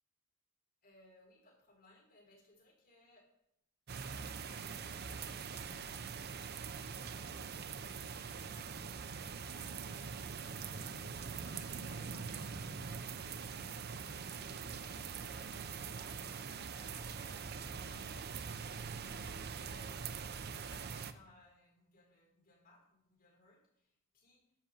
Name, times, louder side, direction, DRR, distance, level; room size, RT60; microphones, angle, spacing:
voice 1, 0.8-3.2 4.1-14.7 15.2-18.1 18.7-20.1 20.6-24.4, left 2 dB, 45° left, -2 dB, 4.4 m, -64 dB
sound 1, 3.9-21.1, right 6 dB, 50° right, 0.6 m, -43 dB
10.5 x 5.9 x 7.4 m, 0.77 s
head